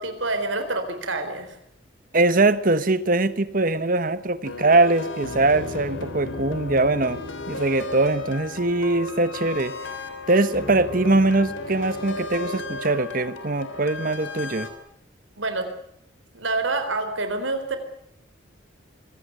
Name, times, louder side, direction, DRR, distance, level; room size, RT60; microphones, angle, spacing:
voice 1, 0.0-1.6 15.4-15.7 16.3-17.8, right 2 dB, 85° right, 9 dB, 4.0 m, -27 dB
voice 2, 2.1-7.2 7.5-9.7 10.3-14.7, right 2 dB, 45° right, 14 dB, 1.2 m, -22 dB
sound 1, 4.4-14.7, left 2 dB, 85° left, 3.7 m, -34 dB
24.5 x 17.0 x 9.5 m, 0.74 s
head